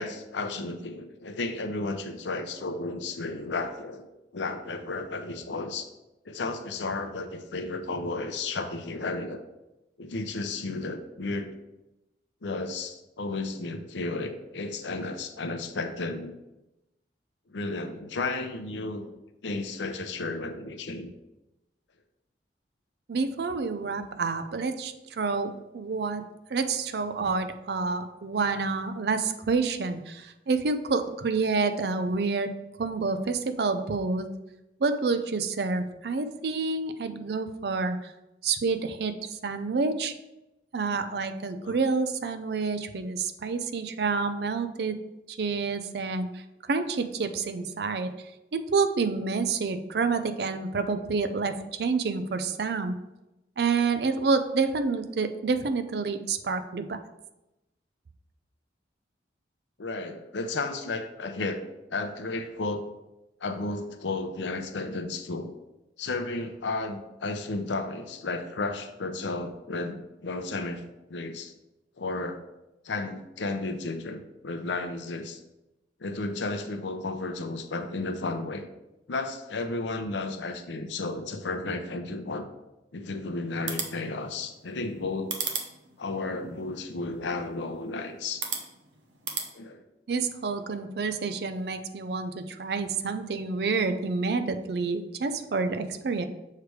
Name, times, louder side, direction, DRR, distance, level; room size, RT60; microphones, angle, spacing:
voice 1, 0.0-4.1 4.3-5.9 6.3-9.4 10.0-11.5 12.4-16.4 17.5-19.0 19.4-21.1 41.6-41.8 59.8-62.9 63.4-65.5 66.0-70.8 71.1-71.5 72.0-72.4 72.8-75.4 76.0-78.7 79.1-82.5 82.9-85.3 86.0-88.4 89.5-89.8, left 3 dB, 80° left, 7 dB, 0.6 m, -33 dB
voice 2, 23.1-26.2 26.5-32.5 32.8-34.3 34.8-38.1 38.4-39.1 39.4-40.1 40.7-45.0 45.3-46.4 46.7-48.1 48.5-52.9 53.6-57.0 90.1-96.3, right 4 dB, 60° right, 9 dB, 0.4 m, -28 dB
sound 1, 83.5-89.5, right 6 dB, 85° right, 0.8 m, -38 dB
6.6 x 3.2 x 4.7 m, 0.96 s
head